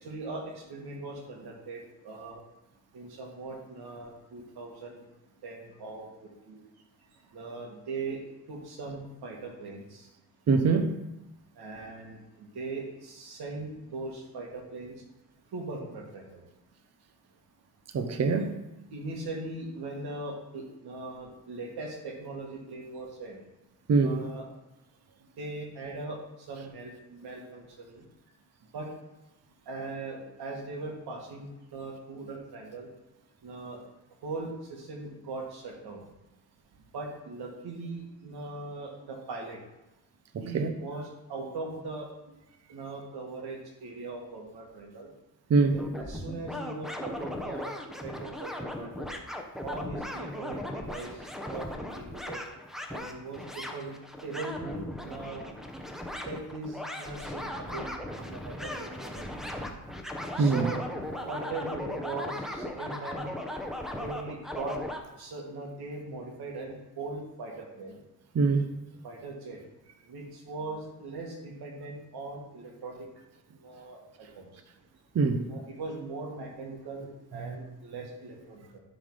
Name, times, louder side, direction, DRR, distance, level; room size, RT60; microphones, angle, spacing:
voice 1, 0.0-2.4 2.9-5.0 5.4-6.6 7.3-8.2 8.5-10.1 11.6-14.9 15.5-16.4 18.9-23.4 24.0-24.4 25.4-28.0 28.7-28.9 29.7-32.9 33.4-33.8 34.2-36.1 36.9-39.6 40.4-42.3 42.7-45.1 45.7-47.7 48.0-49.1 49.6-51.7 51.9-52.4 52.9-55.5 56.3-57.9 58.2-59.6 60.4-60.8 61.2-63.3 64.0-64.8 65.2-68.0 69.0-69.6 70.0-73.1 73.6-74.6 75.4-78.8, right 3 dB, 80° right, 2.1 m, -40 dB
voice 2, 10.5-10.9 17.9-18.5 23.9-24.3 40.3-40.7 45.5-45.8 60.4-60.6 68.3-68.7 75.1-75.4 77.4-77.5, right 4 dB, 45° right, 0.8 m, -24 dB
sound 1, 45.7-65.0, left 1 dB, ahead, 0.7 m, -37 dB
11.5 x 4.0 x 4.9 m
wide cardioid pair, 145°, 38 cm